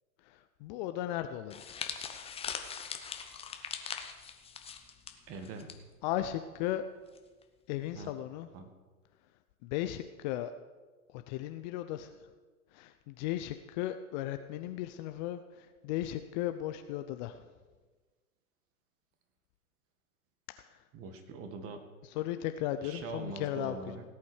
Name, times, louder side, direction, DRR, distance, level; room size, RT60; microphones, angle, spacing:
voice 1, 0.2-1.9 6.0-6.8 7.7-8.5 9.6-10.5 11.1-12.1 12.7-17.4 20.6-20.8 22.0-24.0, left 13 dB, 30° left, 9 dB, 0.6 m, -36 dB
sound 1, 1.5-5.8 6.0-6.3 7.1-7.4, left 7 dB, 15° left, 1.0 m, -41 dB
voice 2, 5.3-5.7 7.9-8.1 8.5-8.7 20.9-21.8 22.8-24.0, right 4 dB, 30° right, 7 dB, 2.0 m, -42 dB
17.5 x 8.6 x 6.5 m, 1.3 s
hypercardioid pair, 115°, 43 cm